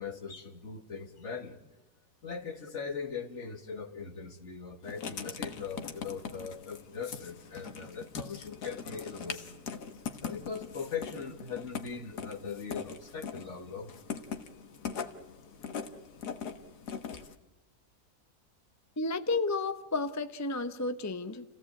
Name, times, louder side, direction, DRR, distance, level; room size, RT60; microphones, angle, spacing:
voice 1, 0.0-1.6 2.2-9.6 10.2-13.9, left 6 dB, 50° left, 6 dB, 2.1 m, -40 dB
Writing, 4.8-17.4, left 6 dB, 90° left, 1.9 m, -41 dB
voice 2, 19.0-21.4, left 3 dB, 15° left, 9 dB, 0.6 m, -32 dB
28.5 x 16.5 x 8.5 m, 1.0 s
omnidirectional pair, 1.7 m